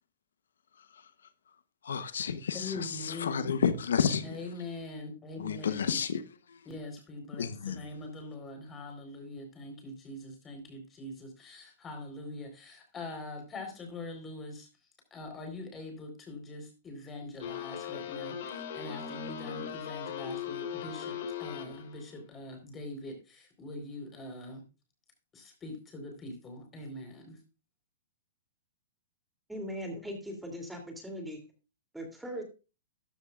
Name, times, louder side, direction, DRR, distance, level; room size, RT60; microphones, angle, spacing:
voice 1, 1.9-4.2 5.4-6.2 7.4-7.8, left 7 dB, 90° left, 0.9 m, -30 dB
voice 2, 2.5-3.8 4.2-6.0 6.6-14.7 15.1-24.6 25.3-27.4, left 2 dB, 20° left, 4.1 m, -43 dB
sound 1, 17.4-22.0, left 8 dB, 60° left, 2.3 m, -39 dB
voice 3, 29.5-31.4 31.9-32.4, equal, 5° right, 2.9 m, -39 dB
14.0 x 10.0 x 2.5 m
hypercardioid pair, 145°, 0 cm